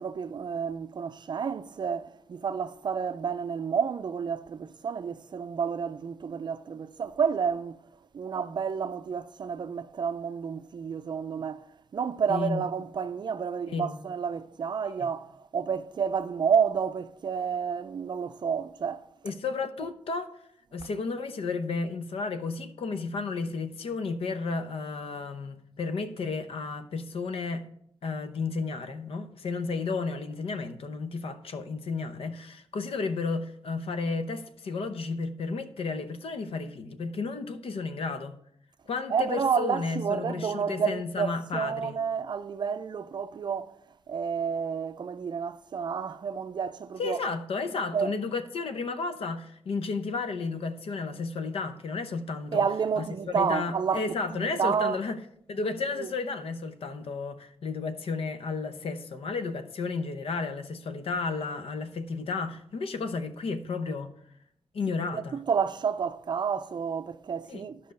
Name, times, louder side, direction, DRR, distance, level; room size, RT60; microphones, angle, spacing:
voice 1, 0.0-7.8 8.1-11.7 11.9-19.1 39.1-43.7 44.1-47.2 47.9-48.1 52.5-55.0 56.0-56.1 65.1-67.8, right 6 dB, 45° right, 0.4 m, -30 dB
voice 2, 12.3-12.6 13.7-14.0 15.0-15.1 19.2-20.4 20.7-27.7 28.0-38.4 38.9-42.0 47.0-52.6 53.0-55.2 55.5-64.1 64.7-65.4 67.5-67.7, left 4 dB, 70° left, 0.8 m, -33 dB
11.5 x 5.5 x 5.2 m
wide cardioid pair, 140°, 10 cm